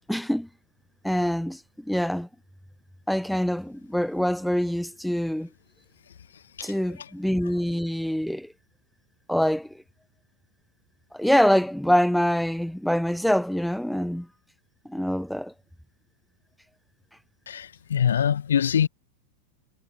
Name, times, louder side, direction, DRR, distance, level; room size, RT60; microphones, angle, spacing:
voice 1, 0.1-0.5 1.0-2.3 3.1-5.5 6.6-8.5 9.3-9.8 11.1-14.3 14.9-15.5, equal, ahead, 1.9 m, -25 dB
voice 2, 17.5-18.9, left 8 dB, 65° left, 1.5 m, -24 dB
figure-of-eight pair, 90°, 0 cm